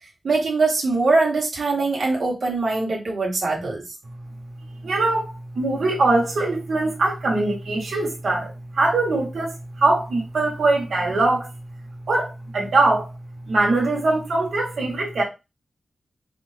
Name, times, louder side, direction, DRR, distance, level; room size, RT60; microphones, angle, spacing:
voice 1, 0.2-3.8, right 3 dB, 60° right, 1.2 m, -22 dB
voice 2, 4.8-5.3 5.5-11.5 12.1-13.1 13.5-15.2, right 2 dB, 80° right, 1.2 m, -22 dB
4.2 x 2.5 x 3.2 m
wide cardioid pair, 150°, 0 cm